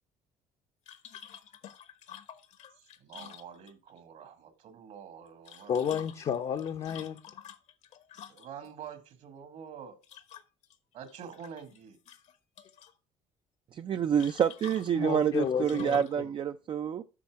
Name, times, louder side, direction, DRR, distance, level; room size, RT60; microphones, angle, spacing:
sound 1, 0.9-4.0 5.3-8.7 10.0-10.8 11.1-11.8 12.1-12.9 14.2-16.2, left 9 dB, 60° left, 1.0 m, -49 dB
voice 1, 3.0-5.9 8.3-10.0 10.9-12.0, right 7 dB, 65° right, 1.7 m, -47 dB
voice 2, 5.7-7.2 14.9-16.3, left 8 dB, 45° left, 0.7 m, -32 dB
voice 3, 13.7-17.0, right 8 dB, 40° right, 0.4 m, -28 dB
8.5 x 5.7 x 4.7 m
cardioid pair, 120°, 13 cm